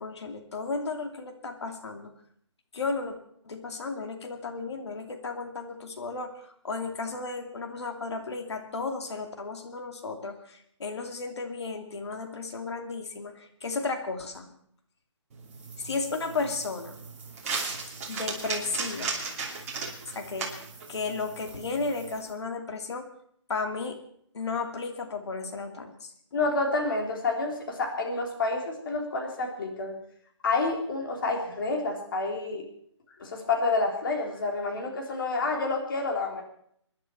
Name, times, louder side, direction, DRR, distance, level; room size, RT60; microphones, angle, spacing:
voice 1, 0.0-2.1 2.7-3.2 3.4-14.5 15.8-17.0 18.1-19.1 20.1-23.1 23.5-24.0 24.3-26.1, left 4 dB, 60° left, 5 dB, 2.6 m, -34 dB
sound 1, 15.3-22.2, right 4 dB, 30° right, 2.9 m, -37 dB
sound 2, 15.4-22.3, right 4 dB, 10° right, 2.8 m, -52 dB
voice 2, 26.3-30.0 30.4-32.6 33.2-36.4, left 3 dB, 45° left, 1 dB, 3.7 m, -29 dB
26.5 x 10.5 x 4.5 m, 0.67 s
hypercardioid pair, 165°, 16 cm